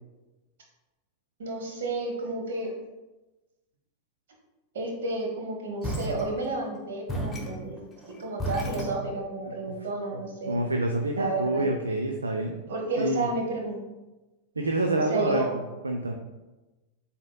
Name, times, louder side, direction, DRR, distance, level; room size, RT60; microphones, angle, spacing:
voice 1, 1.4-2.7 4.7-10.5 11.1-11.6 12.7-13.8 15.1-15.6, right 2 dB, 60° right, 1 dB, 1.0 m, -31 dB
sound 1, 5.8-6.7 7.1-9.5, right 1 dB, 10° left, 0.9 m, -34 dB
voice 2, 10.5-12.5 13.0-13.2 14.6-15.4 15.8-16.1, right 2 dB, 75° right, 3 dB, 0.4 m, -27 dB
7.2 x 2.8 x 2.2 m, 1.1 s
figure-of-eight pair, 90°, 0 cm